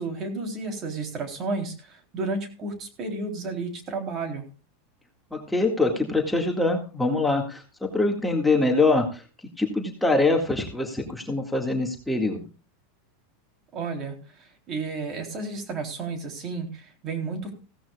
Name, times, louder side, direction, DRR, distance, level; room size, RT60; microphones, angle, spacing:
voice 1, 0.0-4.4 13.7-17.5, right 3 dB, 40° right, 5 dB, 3.7 m, -32 dB
voice 2, 5.3-7.6 7.9-9.2 9.6-12.4, left 2 dB, 5° left, 1 dB, 2.1 m, -24 dB
16.0 x 14.0 x 2.4 m, 0.33 s
hypercardioid pair, 115°, 0 cm